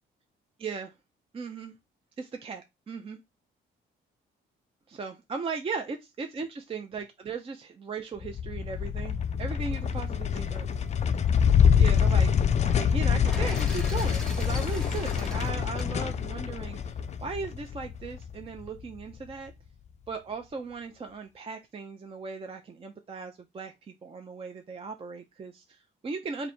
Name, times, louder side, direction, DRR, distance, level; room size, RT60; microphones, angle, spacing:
voice 1, 0.6-0.9 1.3-1.7 2.2-3.2 4.9-10.7 11.8-12.3 12.6-19.5 20.1-26.5, right 4 dB, 30° right, 0.5 m, -37 dB
sound 1, 8.2-18.8, left 7 dB, 35° left, 0.4 m, -26 dB
sound 2, 13.2-17.3, left 1 dB, 5° left, 1.0 m, -42 dB
3.0 x 2.7 x 4.2 m
cardioid pair, 90°, 20 cm